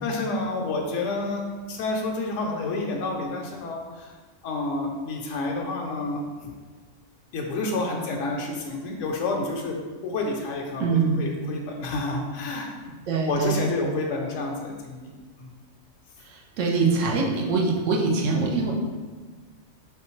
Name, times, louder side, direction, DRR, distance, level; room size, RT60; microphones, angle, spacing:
voice 1, 0.0-4.1 4.4-6.2 7.3-9.8 10.0-12.7 13.3-15.1 15.4-15.5, left 2 dB, 80° left, 0 dB, 0.9 m, -29 dB
voice 2, 10.8-11.2 13.1-13.7 16.2-18.7, right 4 dB, 75° right, -1 dB, 1.1 m, -24 dB
4.2 x 3.5 x 3.0 m, 1.4 s
omnidirectional pair, 1.3 m